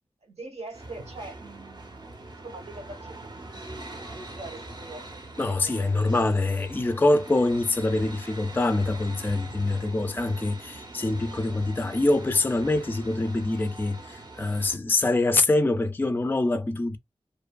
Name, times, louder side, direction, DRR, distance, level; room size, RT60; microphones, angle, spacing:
voice 1, 0.2-6.1, right 2 dB, 85° right, 1.0 m, -44 dB
sound 1, 0.7-14.8, right 2 dB, 45° right, 0.6 m, -43 dB
voice 2, 5.4-17.0, left 2 dB, 20° left, 0.3 m, -25 dB
2.6 x 2.4 x 2.2 m
wide cardioid pair, 65°, 11 cm